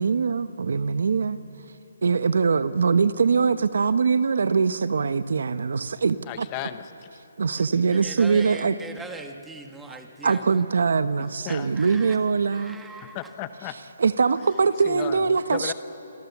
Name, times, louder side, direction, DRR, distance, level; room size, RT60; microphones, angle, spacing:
voice 1, 0.0-1.4 2.0-6.5 7.4-8.8 9.9-12.8 14.0-15.7, right 5 dB, 70° right, 1.1 m, -22 dB
voice 2, 6.3-7.1 11.4-11.7 13.0-13.8 14.8-15.7, left 13 dB, 25° left, 1.0 m, -35 dB
voice 3, 8.0-10.4 11.5-11.9 12.6-13.2, right 3 dB, 5° right, 1.7 m, -40 dB
26.5 x 24.0 x 7.3 m
hypercardioid pair, 160°, 0 cm